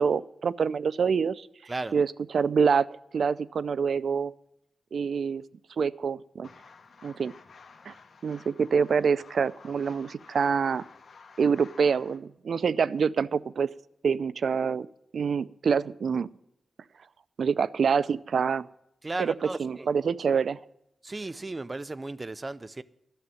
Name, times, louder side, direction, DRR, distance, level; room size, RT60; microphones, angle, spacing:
voice 1, 0.0-1.5 1.9-2.9 3.1-4.3 4.9-5.4 5.8-6.5 7.0-7.3 7.9-8.0 8.2-10.8 11.4-13.7 14.0-14.9 15.1-16.3 17.4-18.6 19.2-19.3 19.6-20.6, right 6 dB, 70° right, 0.4 m, -26 dB
voice 2, 1.7-2.0 19.0-19.9 21.0-22.8, right 2 dB, 25° right, 0.6 m, -35 dB
sound 1, 6.4-12.2, left 5 dB, 65° left, 1.5 m, -52 dB
11.5 x 7.4 x 9.3 m
wide cardioid pair, 100°, 0 cm